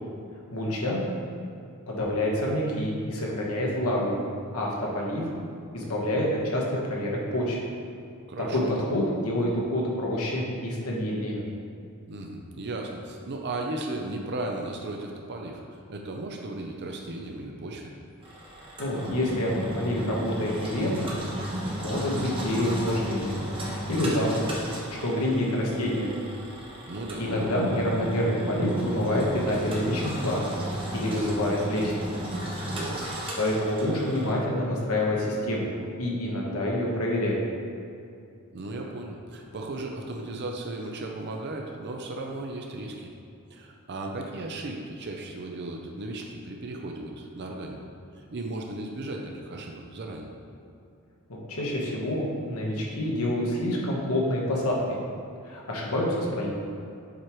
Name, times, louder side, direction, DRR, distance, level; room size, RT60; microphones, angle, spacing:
voice 1, 0.5-1.0 1.9-4.2 4.5-5.3 5.7-7.6 8.4-11.4 18.8-21.1 21.7-23.4 23.6-24.6 25.0-26.2 27.2-30.4 30.9-32.0 33.4-35.7 36.0-37.4 51.3-55.0 55.4-56.5, left 1 dB, 70° left, -3 dB, 1.2 m, -27 dB
voice 2, 8.3-8.7 12.1-17.9 26.9-27.3 32.7-33.1 38.5-43.1 43.5-47.8 48.2-50.3, right 2 dB, 50° right, 1 dB, 0.5 m, -36 dB
Engine, 18.2-34.3, right 1 dB, 25° right, 1.0 m, -34 dB
7.4 x 4.6 x 3.1 m, 2.5 s
head